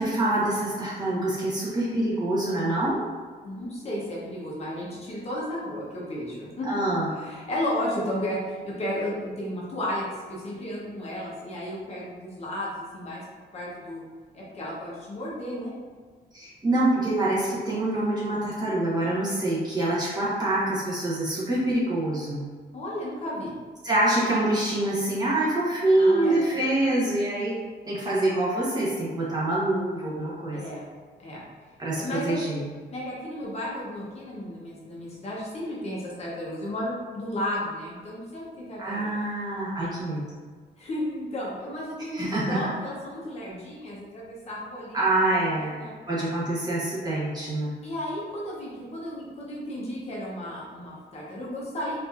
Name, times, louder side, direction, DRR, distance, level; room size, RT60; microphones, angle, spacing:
voice 1, 0.0-3.0 6.7-7.1 16.3-22.4 23.8-27.6 27.9-30.6 31.8-32.6 38.8-40.2 42.1-42.6 44.9-45.8 46.1-47.7, right 1 dB, 20° right, -7 dB, 0.9 m, -25 dB
voice 2, 3.4-13.2 13.5-14.0 14.3-15.8 22.7-23.5 26.0-26.7 30.5-30.8 31.2-31.4 31.9-32.4 32.9-39.2 40.8-45.0 45.4-46.0 47.8-52.0, left 1 dB, 35° left, -5 dB, 0.7 m, -33 dB
4.3 x 2.6 x 2.4 m, 1.5 s
wide cardioid pair, 170°, 18 cm